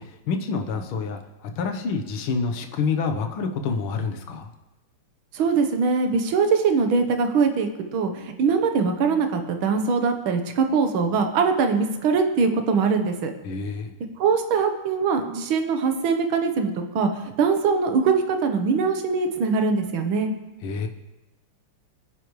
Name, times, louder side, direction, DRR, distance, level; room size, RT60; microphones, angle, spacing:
voice 1, 0.0-4.5 13.4-13.9 20.6-20.9, left 4 dB, 70° left, 5 dB, 1.9 m, -28 dB
voice 2, 5.3-13.3 14.2-17.1 17.4-20.3, right 5 dB, 70° right, 5 dB, 1.9 m, -22 dB
25.5 x 10.0 x 3.2 m, 1.0 s
omnidirectional pair, 2.4 m